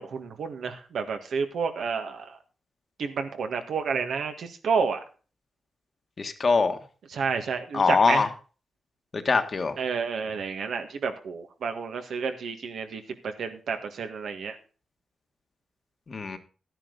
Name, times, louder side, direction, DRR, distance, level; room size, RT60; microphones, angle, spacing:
voice 1, 0.0-2.3 3.0-5.0 7.1-8.3 9.8-13.0 13.4-14.6, right 5 dB, 80° right, 1.7 m, -30 dB
voice 2, 6.2-6.8 7.7-8.3 9.1-9.8 16.1-16.4, left 4 dB, 45° left, 1.4 m, -23 dB
12.0 x 9.9 x 4.0 m
cardioid pair, 75°, 0 cm